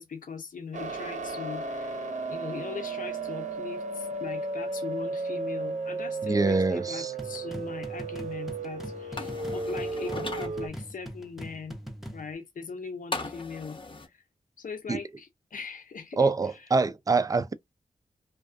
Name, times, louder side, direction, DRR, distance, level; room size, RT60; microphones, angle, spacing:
voice 1, 0.0-2.0 2.3-11.8 12.1-14.2 14.6-16.7, left 5 dB, 75° left, 0.7 m, -40 dB
sound 1, 0.7-10.7, right 3 dB, 60° right, 0.7 m, -34 dB
voice 2, 6.2-7.1 14.9-15.0 16.2-17.5, right 3 dB, 25° right, 0.4 m, -25 dB
sound 2, 7.2-12.3, equal, ahead, 0.8 m, -42 dB
sound 3, 9.2-10.5 13.1-14.1, left 3 dB, 35° left, 0.7 m, -37 dB
2.3 x 2.3 x 2.5 m
cardioid pair, 60°, 14 cm